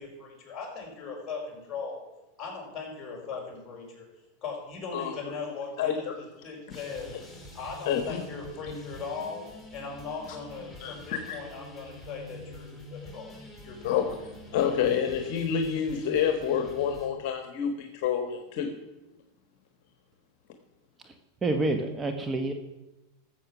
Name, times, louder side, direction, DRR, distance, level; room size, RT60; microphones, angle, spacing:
voice 1, 0.0-2.0 2.4-4.1 4.4-7.1 7.5-9.5 9.7-13.3 13.6-14.1, left 4 dB, 30° left, 0 dB, 5.4 m, -39 dB
voice 2, 5.8-6.1 7.9-8.2 8.7-8.8 10.8-11.4 13.8-14.1 14.5-18.7, left 8 dB, 60° left, 6 dB, 1.3 m, -28 dB
sound 1, 6.7-17.1, left 1 dB, ahead, 2.7 m, -46 dB
voice 3, 21.4-22.5, right 2 dB, 20° right, 6 dB, 1.1 m, -28 dB
13.5 x 7.6 x 6.0 m, 1.0 s
hypercardioid pair, 115°, 0 cm